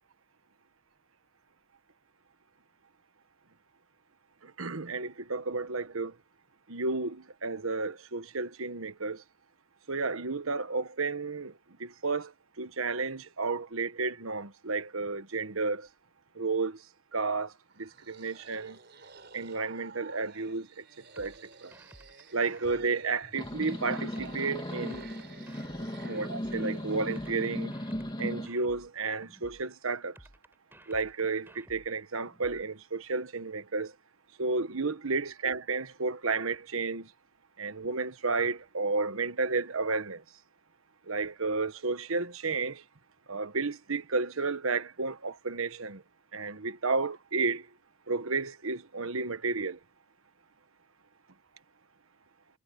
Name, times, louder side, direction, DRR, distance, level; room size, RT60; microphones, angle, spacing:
voice 1, 4.4-6.1 6.7-9.2 9.9-11.5 11.8-12.3 12.6-15.9 16.3-16.8 17.1-18.8 19.3-20.8 21.2-21.3 21.6-21.7 22.3-25.1 26.1-27.7 28.2-30.1 30.9-33.9 34.4-37.1 37.6-40.2 41.1-42.8 43.3-46.0 46.3-47.7 48.1-49.8, right 4 dB, 75° right, 1.3 m, -32 dB
sound 1, 17.7-27.7, right 4 dB, 50° right, 4.8 m, -51 dB
sound 2, 21.2-23.6 24.2-26.6 27.2-29.6 30.2-32.6, right 1 dB, 10° right, 5.9 m, -55 dB
sound 3, 23.3-28.5, equal, 20° left, 2.8 m, -36 dB
head